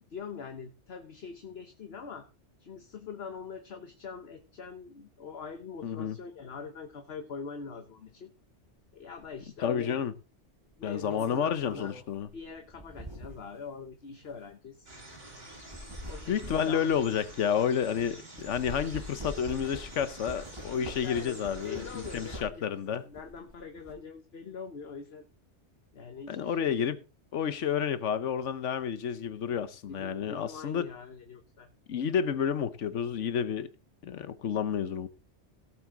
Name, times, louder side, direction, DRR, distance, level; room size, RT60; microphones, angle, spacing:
voice 1, 0.1-2.3 2.6-8.3 8.9-10.0 10.8-11.9 12.3-14.9 16.1-16.9 20.8-25.2 25.9-26.7 29.9-31.7, left 5 dB, 60° left, 1.3 m, -43 dB
voice 2, 5.8-6.2 9.6-10.1 10.8-12.3 16.3-23.1 26.3-27.0 27.3-30.9 31.9-33.7 34.0-35.1, left 8 dB, 80° left, 1.2 m, -30 dB
sound 1, 9.2-9.4 10.7-13.5 14.2-14.4 15.5-18.1 18.4-22.7 23.1-23.9, equal, 20° right, 3.8 m, -44 dB
sound 2, 14.9-22.4, right 1 dB, 55° right, 3.9 m, -48 dB
17.5 x 7.7 x 3.8 m
omnidirectional pair, 1.2 m